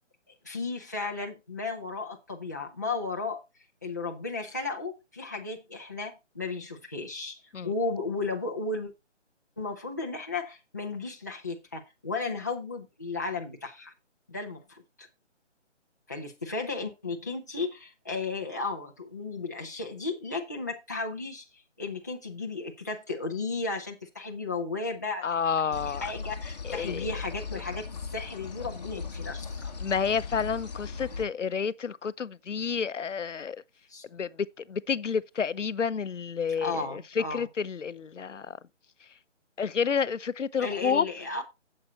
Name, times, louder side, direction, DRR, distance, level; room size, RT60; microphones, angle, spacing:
voice 1, 0.4-3.4 3.8-8.9 9.6-13.9 14.3-15.1 16.1-21.4 21.8-25.2 25.7-27.9 28.1-29.7 33.9-34.0 36.6-37.5 40.6-41.4, left 3 dB, 15° left, 0.9 m, -34 dB
voice 2, 25.2-26.0 26.6-27.1 29.8-33.6 34.1-38.6 39.6-41.1, left 6 dB, 80° left, 0.8 m, -30 dB
sound 1, 25.7-31.2, left 5 dB, 35° left, 1.3 m, -38 dB
8.9 x 7.7 x 4.2 m
hypercardioid pair, 175°, 36 cm